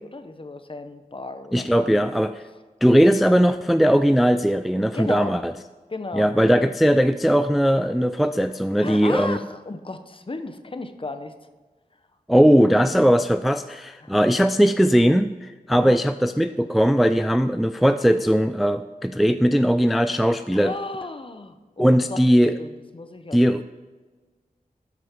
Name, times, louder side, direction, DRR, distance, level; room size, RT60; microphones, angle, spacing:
voice 1, 0.0-2.1 2.5-2.6 4.9-5.4 5.9-6.3 8.8-11.3 12.6-13.0 14.0-14.2 15.7-16.0 20.5-22.2 22.6-23.4, left 2 dB, 35° left, 9 dB, 0.8 m, -35 dB
voice 2, 1.5-2.4 2.8-5.5 6.1-9.4 12.3-20.7 21.8-22.5 23.3-23.6, equal, ahead, 10 dB, 0.3 m, -19 dB
12.5 x 5.9 x 3.7 m, 1.3 s
cardioid pair, 55°, 15 cm